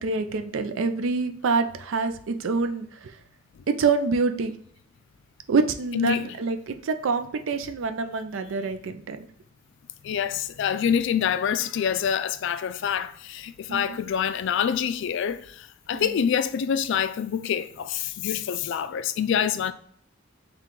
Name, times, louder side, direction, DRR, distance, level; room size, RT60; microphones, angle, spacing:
voice 1, 0.0-3.1 3.7-4.5 5.5-9.3 13.7-14.0 15.9-16.2, right 4 dB, 70° right, 0.4 m, -26 dB
voice 2, 5.9-6.3 10.0-19.7, left 8 dB, 65° left, 0.3 m, -26 dB
3.7 x 2.3 x 4.4 m
head